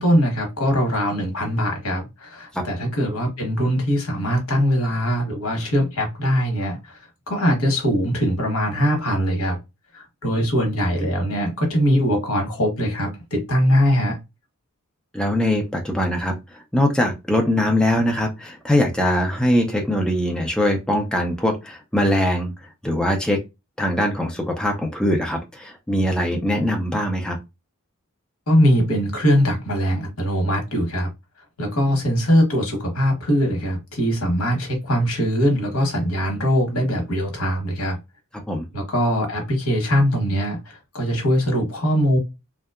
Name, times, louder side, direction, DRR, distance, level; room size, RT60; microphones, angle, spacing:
voice 1, 0.0-7.0 7.3-9.6 9.9-14.2 28.5-31.1 31.6-38.0 38.7-42.2, equal, 80° left, 1.0 m, -21 dB
voice 2, 15.1-23.4 23.8-27.4 38.5-38.7, left 1 dB, 5° left, 0.4 m, -22 dB
2.7 x 2.2 x 2.3 m
head